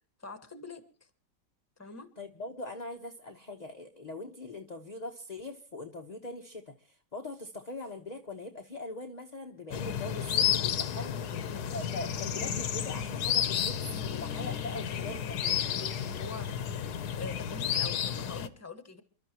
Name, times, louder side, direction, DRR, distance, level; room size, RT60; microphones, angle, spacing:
voice 1, 0.2-0.8 1.8-2.1 11.2-11.7 14.7-16.5 17.1-19.0, left 3 dB, 10° left, 10 dB, 1.3 m, -45 dB
voice 2, 2.2-15.2, left 2 dB, 30° left, 4 dB, 0.9 m, -42 dB
sound 1, 9.7-18.5, left 9 dB, 65° left, 1.4 m, -32 dB
29.0 x 12.0 x 2.9 m, 0.37 s
omnidirectional pair, 1.9 m